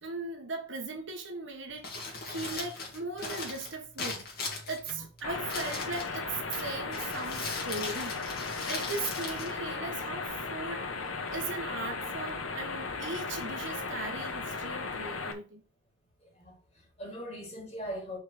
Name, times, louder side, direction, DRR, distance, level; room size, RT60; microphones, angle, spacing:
voice 1, 0.0-4.2 4.7-8.2 8.7-10.9 11.3-15.6, right 3 dB, 65° right, 1.5 m, -38 dB
Crumpling crinkling, 1.7-10.3, left 3 dB, 50° left, 2.4 m, -40 dB
sound 1, 5.2-15.3, left 4 dB, 85° left, 1.3 m, -36 dB
voice 2, 16.2-18.2, equal, 30° left, 3.5 m, -41 dB
5.6 x 4.9 x 6.0 m
head